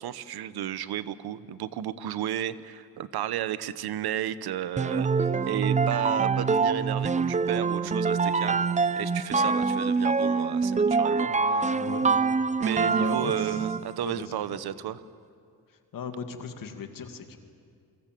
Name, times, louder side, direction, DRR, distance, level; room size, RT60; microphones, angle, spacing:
voice 1, 0.0-5.1 5.4-8.6 9.0-11.3 12.6-15.0, right 11 dB, 75° right, 15 dB, 1.0 m, -33 dB
sound 1, 4.8-13.9, right 4 dB, 20° right, 0.6 m, -25 dB
voice 2, 11.3-12.2 13.0-13.7 14.0-14.6 15.7-17.4, left 6 dB, 55° left, 6 dB, 2.4 m, -38 dB
29.0 x 23.5 x 7.7 m, 2.3 s
cardioid pair, 125°, 39 cm